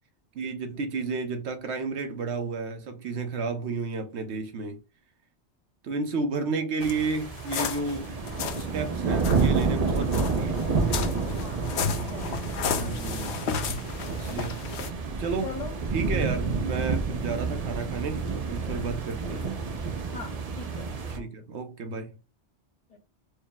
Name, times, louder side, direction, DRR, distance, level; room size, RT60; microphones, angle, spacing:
voice 1, 0.3-4.8 5.8-8.1 8.6-10.7 12.7-13.4 14.1-14.6 14.9-15.5 15.9-19.5 21.2-22.2, right 4 dB, 70° right, 1.0 m, -32 dB
sound 1, 6.8-8.7 9.2-14.9, left 6 dB, 75° left, 0.8 m, -33 dB
sound 2, 6.8-21.2, right 4 dB, 40° right, 0.6 m, -29 dB
voice 2, 11.4-13.0 15.4-15.7 20.1-21.3 22.9-23.0, left 4 dB, 40° left, 0.7 m, -41 dB
4.7 x 2.0 x 3.5 m
omnidirectional pair, 1.2 m